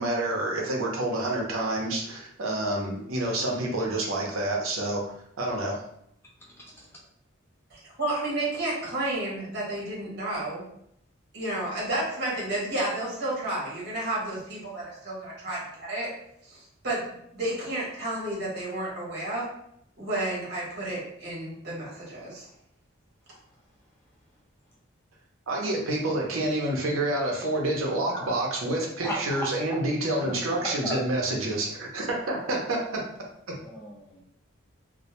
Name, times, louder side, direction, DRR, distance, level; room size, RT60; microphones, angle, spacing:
voice 1, 0.0-5.0 5.4-5.8 25.5-33.0, right 1 dB, 85° right, -1 dB, 0.6 m, -28 dB
voice 2, 6.5-6.9 28.1-28.3 29.0-29.4 30.3-31.0 33.6-34.2, equal, 10° left, -4 dB, 0.5 m, -37 dB
voice 3, 7.7-10.6 11.3-16.1 16.5-19.5 20.0-22.4, right 1 dB, 55° right, -5 dB, 0.9 m, -31 dB
2.1 x 2.1 x 2.8 m, 0.73 s
head